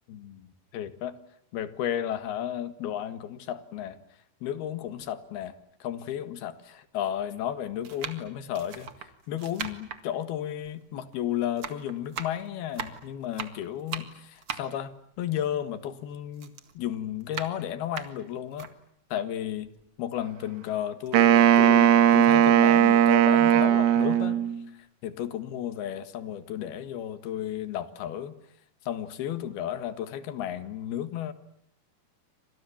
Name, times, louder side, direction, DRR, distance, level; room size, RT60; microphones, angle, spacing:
voice 1, 0.1-1.2 1.5-4.0 4.4-18.7 19.1-19.7 20.0-24.4 25.0-28.4 28.9-31.3, left 10 dB, 70° left, 12 dB, 3.5 m, -33 dB
sound 1, 5.0-5.1 6.0-6.1 7.0-7.3 7.8-11.2 11.4-16.0 16.3-18.7 19.2-19.3 19.6-20.6 20.9-21.1, right 7 dB, 45° right, 2.1 m, -40 dB
Wind instrument woodwind instrument, 21.1-24.6, right 10 dB, 70° right, 3.0 m, -18 dB
29.0 x 26.0 x 7.2 m, 0.72 s
omnidirectional pair, 4.7 m